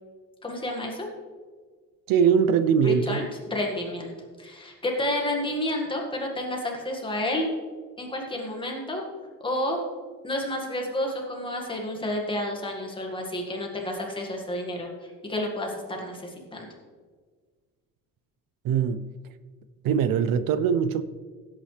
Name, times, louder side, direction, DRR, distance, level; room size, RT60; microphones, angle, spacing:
voice 1, 0.4-1.1 2.8-4.1 4.4-7.5 8.0-9.0 9.4-9.8 10.2-14.9 15.2-16.7, left 1 dB, 15° left, 1.8 m, -30 dB
voice 2, 2.1-3.2 18.6-19.1 19.8-21.0, right 7 dB, 80° right, 0.6 m, -22 dB
16.0 x 8.4 x 3.3 m
cardioid pair, 165°, 33 cm